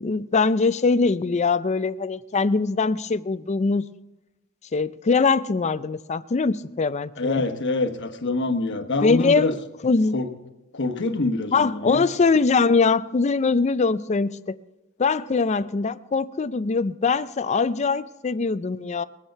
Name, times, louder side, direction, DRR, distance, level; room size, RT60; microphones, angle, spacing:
voice 1, 0.0-3.8 4.7-7.4 9.0-9.6 9.8-10.1 11.5-14.6 15.0-19.0, left 4 dB, 35° left, 0.4 m, -22 dB
voice 2, 7.2-9.5 10.1-10.3 10.7-12.0, left 2 dB, 60° left, 1.2 m, -25 dB
21.5 x 8.9 x 4.6 m
head